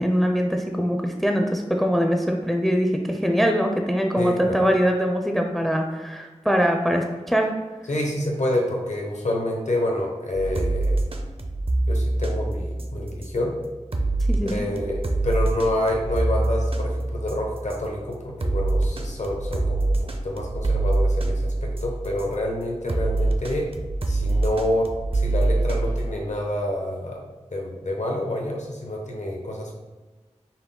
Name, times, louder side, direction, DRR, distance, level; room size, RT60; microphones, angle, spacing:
voice 1, 0.0-7.5 14.3-14.6, equal, ahead, 3 dB, 0.4 m, -22 dB
voice 2, 4.2-4.6 7.9-11.0 11.9-13.5 14.4-19.9 20.2-21.5 21.8-23.7 24.1-24.9 25.2-27.2 27.5-29.7, left 1 dB, 75° left, -1 dB, 0.8 m, -27 dB
sound 1, 10.3-22.3 22.9-26.1, right 2 dB, 50° right, 0.5 m, -25 dB
5.7 x 2.1 x 3.7 m, 1.3 s
wide cardioid pair, 50°, 12 cm